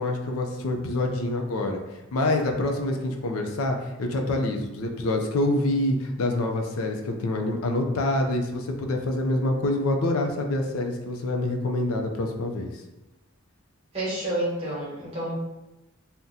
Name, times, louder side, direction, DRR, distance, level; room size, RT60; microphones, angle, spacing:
voice 1, 0.0-1.8 2.1-12.7, left 2 dB, 80° left, 3 dB, 0.4 m, -26 dB
voice 2, 13.9-15.4, right 1 dB, 30° right, -7 dB, 1.1 m, -29 dB
2.7 x 2.1 x 3.6 m, 1.0 s
head